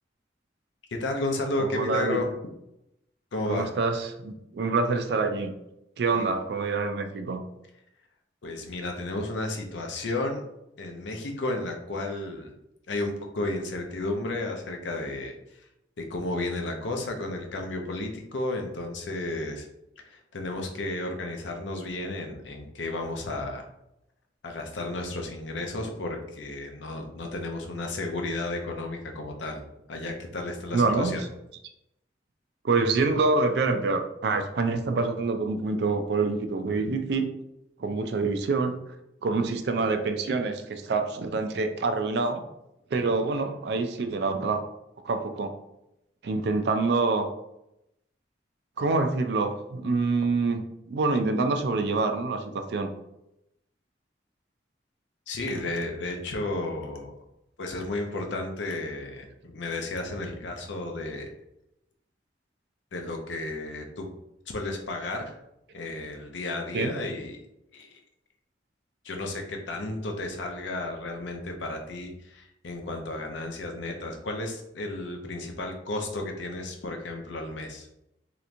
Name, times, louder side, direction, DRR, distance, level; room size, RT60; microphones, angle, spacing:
voice 1, 1.0-2.3 3.3-3.7 6.1-6.3 8.4-10.4 10.8-12.5 12.9-15.7 16.0-19.7 20.1-23.7 24.4-29.6 29.9-31.2 55.3-57.1 57.6-61.3 62.9-64.1 64.5-65.4 65.7-67.4 67.7-68.0 69.0-77.9, left 2 dB, 85° left, 3 dB, 0.6 m, -33 dB
voice 2, 1.6-2.2 3.5-5.5 6.0-7.4 30.7-31.1 32.6-37.3 37.8-38.8 39.2-42.4 42.9-44.6 45.0-45.6 46.2-47.3 48.8-50.6 50.9-52.9 66.7-66.9, right 3 dB, 65° right, 7 dB, 0.4 m, -26 dB
3.2 x 2.9 x 2.5 m, 0.85 s
head